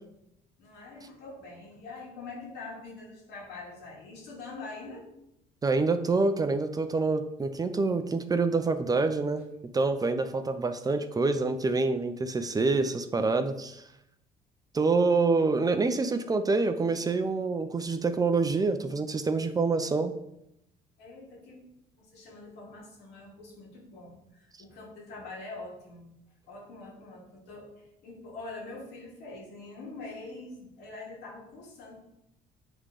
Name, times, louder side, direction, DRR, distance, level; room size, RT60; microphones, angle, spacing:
voice 1, 0.6-5.1 21.0-21.6 22.0-26.1 26.5-32.0, left 3 dB, 80° left, -2 dB, 2.4 m, -44 dB
voice 2, 5.6-9.4 9.7-13.8 14.7-20.1, right 3 dB, 20° right, 9 dB, 0.5 m, -26 dB
7.8 x 3.7 x 4.9 m, 0.82 s
cardioid pair, 110°, 17 cm